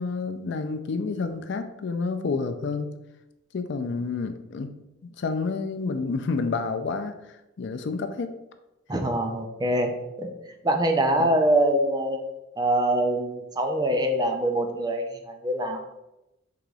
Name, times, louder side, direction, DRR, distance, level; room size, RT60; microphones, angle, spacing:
voice 1, 0.0-2.9 3.5-4.7 5.0-7.1 7.6-8.3 11.2-11.3, left 4 dB, 65° left, 8 dB, 0.4 m, -29 dB
voice 2, 8.9-9.9 10.2-10.3 10.6-12.2 12.6-15.8, right 1 dB, 20° right, 4 dB, 0.5 m, -24 dB
3.8 x 3.0 x 4.7 m, 0.93 s
head